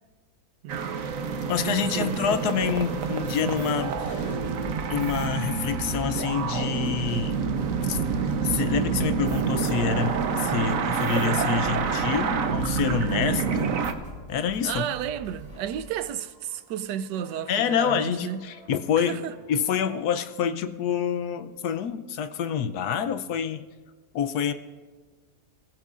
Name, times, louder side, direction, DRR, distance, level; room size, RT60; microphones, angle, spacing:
voice 1, 0.6-1.1 1.6-2.4 14.6-18.4 19.0-19.3, right 10 dB, 85° right, 1.3 m, -33 dB
sound 1, 0.7-13.9, right 6 dB, 60° right, 1.2 m, -27 dB
voice 2, 1.5-4.4 4.9-7.4 7.8-13.8 14.3-14.9 17.5-23.7 24.1-24.5, left 7 dB, 70° left, 1.2 m, -27 dB
sound 2, 2.6-20.3, equal, 20° left, 3.0 m, -44 dB
27.5 x 15.5 x 2.5 m
omnidirectional pair, 1.8 m